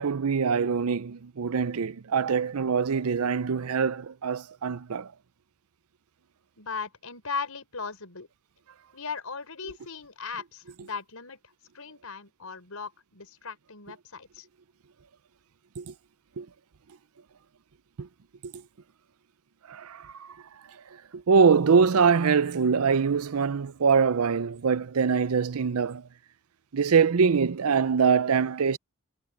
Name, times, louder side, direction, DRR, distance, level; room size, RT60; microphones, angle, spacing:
voice 1, 0.0-5.1 15.8-15.9 16.4-16.5 18.0-18.1 18.4-18.5 19.7-20.4 21.1-26.0 26.7-28.8, right 5 dB, 80° right, 0.6 m, -24 dB
voice 2, 6.6-8.3 8.9-11.4 11.7-14.5, left 5 dB, 80° left, 4.8 m, -37 dB
head